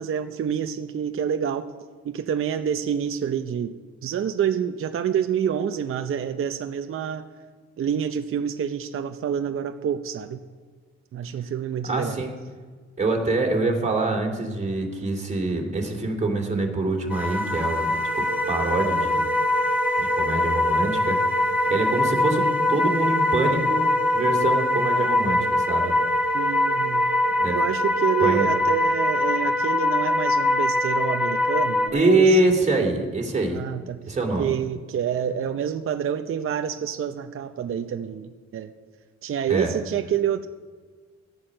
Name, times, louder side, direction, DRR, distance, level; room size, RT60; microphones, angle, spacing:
voice 1, 0.0-1.7 2.0-7.2 7.8-10.4 11.1-12.2 26.3-27.1 27.5-32.4 33.5-34.0 34.4-38.7 39.2-40.5, right 8 dB, 45° right, 7 dB, 0.7 m, -27 dB
voice 2, 11.8-12.3 13.0-19.3 20.0-26.0 27.4-27.6 28.2-28.5 31.9-33.6 34.1-34.5 39.5-39.7, right 2 dB, 25° right, 1 dB, 2.6 m, -25 dB
sound 1, 17.1-31.9, left 2 dB, 5° right, 2.3 m, -23 dB
sound 2, 18.1-29.2, right 11 dB, 80° right, 0.8 m, -34 dB
13.5 x 8.6 x 6.5 m, 1.5 s
cardioid pair, 90°, 30 cm